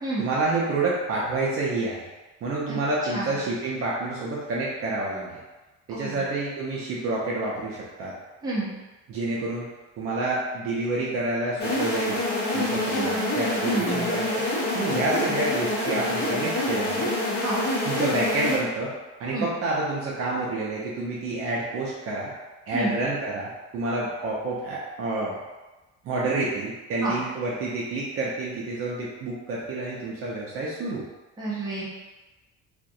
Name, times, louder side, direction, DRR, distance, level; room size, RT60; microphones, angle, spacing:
voice 1, 0.2-2.1 2.4-5.3 5.9-8.1 9.1-9.7 10.0-12.2 12.5-14.3 14.7-17.1 17.8-18.9 19.2-22.3 22.7-25.4 26.0-31.0, right 2 dB, 50° right, -5 dB, 0.5 m, -28 dB
voice 2, 3.0-3.3 5.9-6.3 8.4-8.7 12.5-12.6 12.9-13.3 13.6-14.1 17.2-17.6 19.3-19.5 22.7-23.0 27.0-27.1 31.4-31.8, right 2 dB, 15° right, -8 dB, 0.7 m, -30 dB
sound 1, 11.6-18.6, left 1 dB, 35° left, 0.5 m, -26 dB
2.4 x 2.1 x 2.6 m, 1.1 s
cardioid pair, 155°, 30 cm